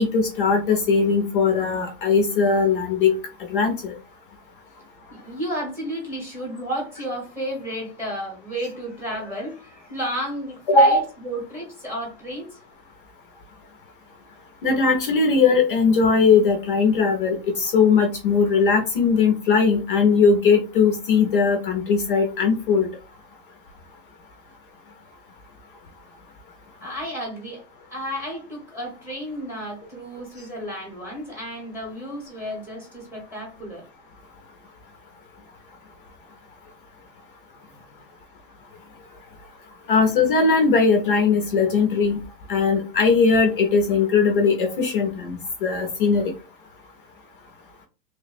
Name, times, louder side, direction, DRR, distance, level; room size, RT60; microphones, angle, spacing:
voice 1, 0.0-3.2 3.5-3.9 10.7-11.0 14.6-22.9 39.9-42.2 42.5-46.3, left 4 dB, 35° left, 3 dB, 0.4 m, -19 dB
voice 2, 5.1-12.5 26.8-27.6 27.9-33.8, equal, 5° right, -2 dB, 0.8 m, -32 dB
3.2 x 2.0 x 4.0 m, 0.32 s
supercardioid pair, 170°, 49 cm